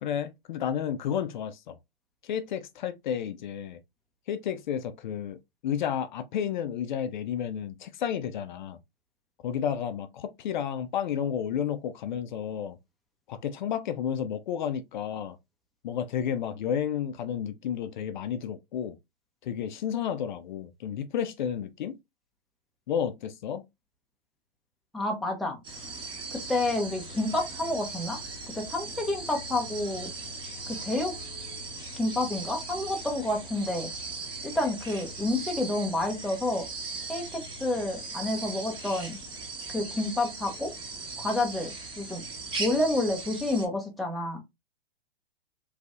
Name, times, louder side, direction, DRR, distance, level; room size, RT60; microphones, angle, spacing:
voice 1, 0.0-1.8 2.2-3.8 4.3-5.4 5.6-8.8 9.4-12.8 13.3-15.4 15.8-19.0 19.4-22.0 22.9-23.6, left 8 dB, 55° left, 0.4 m, -31 dB
voice 2, 24.9-25.6 26.3-28.2 28.5-30.1 30.7-31.1 32.0-33.9 34.4-36.7 37.1-39.2 39.7-40.7 41.2-42.2 42.6-44.4, left 2 dB, ahead, 0.5 m, -29 dB
sound 1, 25.6-43.7, right 3 dB, 15° right, 0.8 m, -39 dB
3.1 x 2.5 x 2.4 m
figure-of-eight pair, 110°, 29 cm